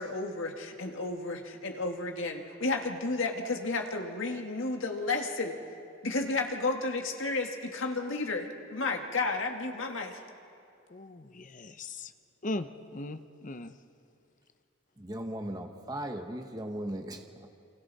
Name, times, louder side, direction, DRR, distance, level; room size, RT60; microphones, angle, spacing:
voice 1, 0.0-5.6 6.0-10.2, left 3 dB, 70° left, 3 dB, 1.9 m, -32 dB
voice 2, 10.9-12.1 12.4-13.7, left 2 dB, 40° left, 10 dB, 0.8 m, -38 dB
voice 3, 15.0-17.5, right 1 dB, 20° right, 4 dB, 1.1 m, -37 dB
29.0 x 25.0 x 4.2 m, 2.5 s
head